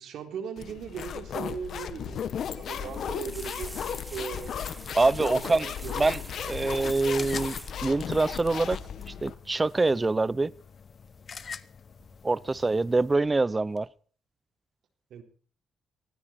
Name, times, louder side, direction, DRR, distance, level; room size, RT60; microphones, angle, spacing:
voice 1, 0.0-4.6 5.2-6.1 15.1-15.2, right 7 dB, 70° right, 3.9 m, -39 dB
sound 1, 0.6-9.4, left 8 dB, 60° left, 1.5 m, -35 dB
sound 2, 2.5-8.0 9.0-9.3 9.6-9.9 11.1-11.6 12.0-12.5 13.0-13.4 13.8-13.9, right 1 dB, 5° right, 2.9 m, -46 dB
voice 2, 4.9-5.7 6.0-7.6 7.8-8.8 9.1-10.5 12.2-13.9, right 3 dB, 20° right, 0.8 m, -25 dB
sound 3, 6.3-13.1, left 6 dB, 45° left, 0.9 m, -46 dB
19.5 x 16.5 x 4.5 m
cardioid pair, 90°, 0 cm